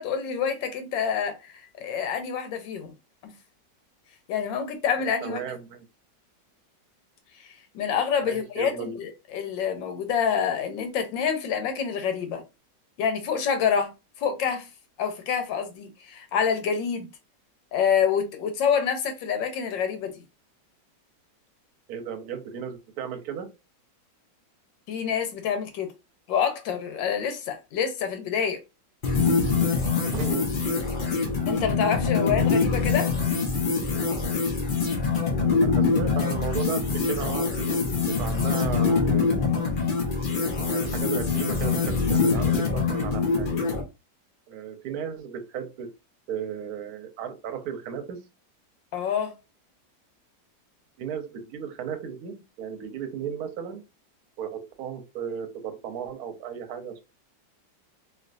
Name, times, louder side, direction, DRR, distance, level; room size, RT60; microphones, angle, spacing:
voice 1, 0.0-2.9 3.2-3.3 4.3-5.4 7.4-12.4 13.0-13.9 14.2-14.7 15.0-17.1 17.7-20.2 24.9-25.9 26.3-28.6 31.5-33.1 48.9-49.4, left 7 dB, 85° left, 1.4 m, -27 dB
voice 2, 5.0-5.8 8.2-9.0 21.9-23.5 30.0-30.5 35.3-39.4 40.7-43.5 44.5-45.9 46.3-48.2 51.0-53.8 54.4-57.0, right 8 dB, 65° right, 1.1 m, -35 dB
sound 1, 29.0-43.8, left 4 dB, 60° left, 0.5 m, -24 dB
3.1 x 2.8 x 2.5 m
omnidirectional pair, 2.0 m